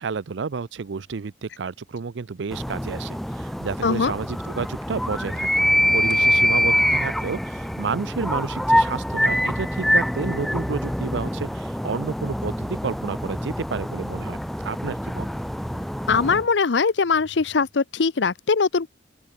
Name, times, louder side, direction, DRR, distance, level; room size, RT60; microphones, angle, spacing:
voice 1, 0.0-5.5 5.9-15.3, right 5 dB, 80° right, 0.5 m, -31 dB
sound 1, 1.0-1.4 4.5-5.3 5.6-7.2 7.6-14.9 15.4-16.2 16.5-16.6 16.9-17.9, right 1 dB, 60° right, 2.4 m, -51 dB
sound 2, 2.5-16.5, equal, ahead, 0.3 m, -25 dB
voice 2, 3.8-4.1 16.1-18.9, left 5 dB, 75° left, 0.7 m, -21 dB
open air
head